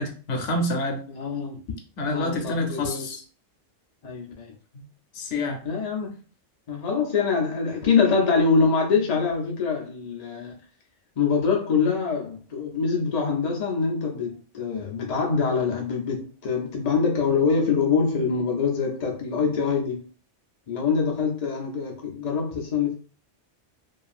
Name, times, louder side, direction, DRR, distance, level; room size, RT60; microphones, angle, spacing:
voice 1, 0.0-1.0 2.0-3.2 4.7-4.8 5.1-5.6, left 1 dB, 80° left, 1.0 m, -27 dB
voice 2, 1.1-1.6 2.1-3.1 4.0-4.5 5.6-6.1 6.7-10.6 11.2-20.0 20.7-23.0, left 5 dB, 55° left, 0.4 m, -24 dB
2.8 x 2.4 x 2.4 m
omnidirectional pair, 1.2 m